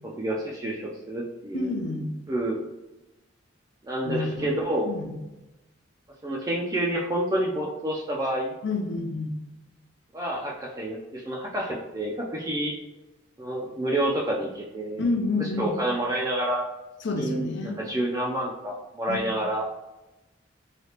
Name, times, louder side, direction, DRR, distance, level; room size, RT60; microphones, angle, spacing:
voice 1, 0.0-1.8 2.3-2.6 3.8-4.9 6.2-8.5 10.1-12.8 13.4-15.0 15.4-16.7 17.2-19.7, right 1 dB, 20° right, -3 dB, 0.3 m, -29 dB
voice 2, 1.5-2.1 4.0-4.5 4.8-5.2 8.6-9.3 12.3-12.5 15.0-15.7 17.0-17.8 19.1-19.4, left 3 dB, 65° left, 3 dB, 0.5 m, -29 dB
3.2 x 2.8 x 2.8 m, 1.0 s
head